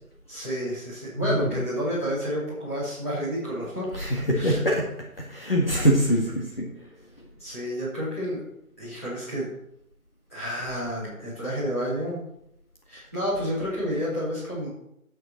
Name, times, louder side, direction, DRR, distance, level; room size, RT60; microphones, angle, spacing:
voice 1, 0.3-3.9 4.3-4.6 6.0-6.1 7.4-8.4 8.8-9.5 10.3-12.2 12.9-14.7, equal, 10° left, -12 dB, 2.6 m, -30 dB
voice 2, 4.0-4.9 5.3-6.7, equal, 40° left, -2 dB, 1.8 m, -23 dB
12.0 x 7.9 x 4.3 m, 0.78 s
figure-of-eight pair, 175°, 44 cm